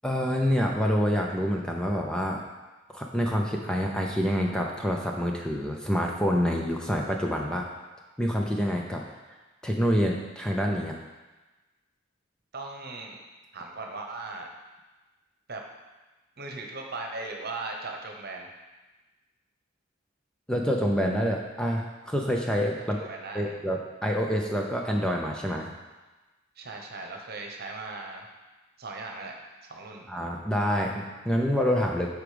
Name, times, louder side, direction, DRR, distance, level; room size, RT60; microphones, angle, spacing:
voice 1, 0.0-2.4 2.9-7.7 8.2-9.0 9.6-11.0 20.5-23.1 23.3-25.7 30.1-32.2, equal, 5° left, 0 dB, 0.6 m, -27 dB
voice 2, 12.5-13.2 13.5-14.5 15.5-15.6 16.4-18.5 22.8-23.5 26.6-28.3 28.8-29.4 29.7-30.1, right 3 dB, 50° right, 2 dB, 1.1 m, -38 dB
8.2 x 5.0 x 5.1 m, 1.2 s
head